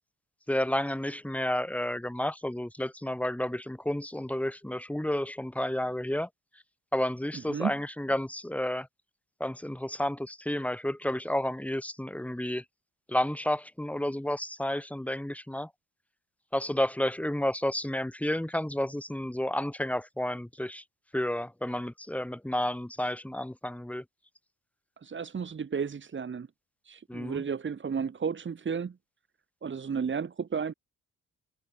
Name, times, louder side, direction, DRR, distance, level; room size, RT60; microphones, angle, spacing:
voice 1, 0.5-6.3 6.9-8.9 9.4-12.6 13.1-15.7 16.5-20.8 21.1-24.0 27.1-27.4, left 1 dB, 5° left, 4.0 m, -31 dB
voice 2, 7.3-7.7 25.0-26.5 26.8-29.0 29.6-30.7, right 6 dB, 40° right, 3.2 m, -33 dB
cardioid pair, 90°, 30 cm